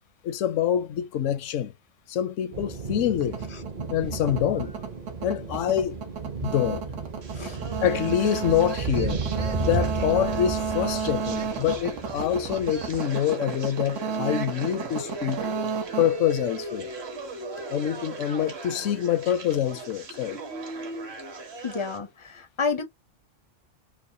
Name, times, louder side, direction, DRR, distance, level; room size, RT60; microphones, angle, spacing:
voice 1, 0.2-1.7 2.1-3.4 3.9-4.7 5.2-6.0 6.4-6.8 7.8-9.2 9.6-15.5 16.0-16.9 17.7-20.4, left 10 dB, 80° left, 1.0 m, -26 dB
sound 1, 2.5-13.0, right 4 dB, 45° right, 0.7 m, -33 dB
sound 2, 3.2-17.1, right 6 dB, 80° right, 1.4 m, -33 dB
sound 3, 7.2-22.0, right 3 dB, 60° right, 1.3 m, -38 dB
voice 2, 21.6-22.8, left 5 dB, 45° left, 0.4 m, -30 dB
4.7 x 2.1 x 2.6 m
omnidirectional pair, 1.3 m